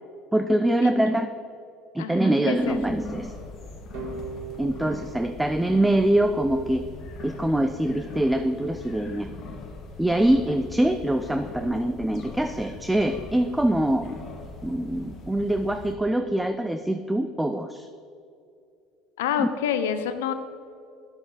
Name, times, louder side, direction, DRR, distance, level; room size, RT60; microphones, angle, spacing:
voice 1, 0.3-1.3 1.9-3.3 4.6-6.8 7.2-9.3 10.0-14.1 14.6-17.9 19.4-19.5, right 1 dB, 5° right, 8 dB, 0.4 m, -24 dB
voice 2, 2.0-2.8 19.2-20.3, left 9 dB, 90° left, 10 dB, 0.6 m, -27 dB
sound 1, 2.6-16.0, left 2 dB, 50° left, 1.5 m, -41 dB
sound 2, 3.9-6.7, right 4 dB, 75° right, 1.6 m, -40 dB
10.0 x 7.0 x 4.0 m, 2.5 s
supercardioid pair, 90°, 0 cm